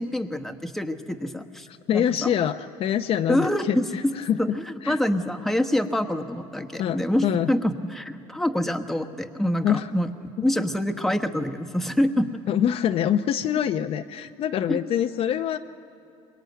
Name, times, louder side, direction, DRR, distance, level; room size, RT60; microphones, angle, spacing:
voice 1, 0.0-1.7 1.9-2.3 3.3-4.1 4.4-10.1 10.4-12.4 14.7-14.8, left 1 dB, ahead, 6 dB, 1.2 m, -26 dB
voice 2, 1.9-4.4 4.8-5.0 6.7-7.5 9.6-9.9 12.5-15.6, left 9 dB, 50° left, 7 dB, 0.7 m, -25 dB
24.0 x 21.0 x 9.3 m, 2.5 s
supercardioid pair, 110°, 13 cm